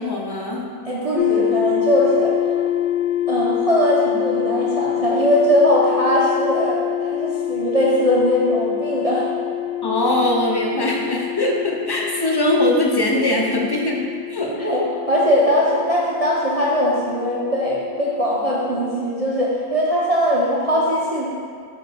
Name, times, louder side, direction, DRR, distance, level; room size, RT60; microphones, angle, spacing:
voice 1, 0.0-0.7 9.8-14.0 14.3-14.6, left 1 dB, 25° left, -1 dB, 0.5 m, -21 dB
voice 2, 0.8-2.5 3.3-9.3 14.6-14.8 15.1-21.3, equal, 30° right, -6 dB, 0.7 m, -20 dB
sound 1, 1.2-19.1, left 12 dB, 65° left, 0.8 m, -26 dB
8.1 x 4.6 x 4.2 m, 2.1 s
omnidirectional pair, 1.5 m